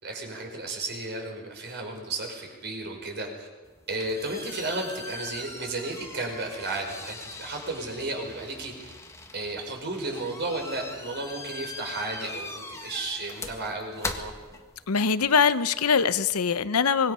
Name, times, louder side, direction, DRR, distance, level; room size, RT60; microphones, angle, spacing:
voice 1, 0.0-3.5 3.9-8.9 9.3-14.3, right 2 dB, 50° right, 2 dB, 5.0 m, -33 dB
sound 1, 3.6-15.1, left 2 dB, 15° left, 1.5 m, -41 dB
voice 2, 14.9-17.1, left 6 dB, 80° left, 13 dB, 0.8 m, -23 dB
25.0 x 21.0 x 5.7 m, 1.3 s
head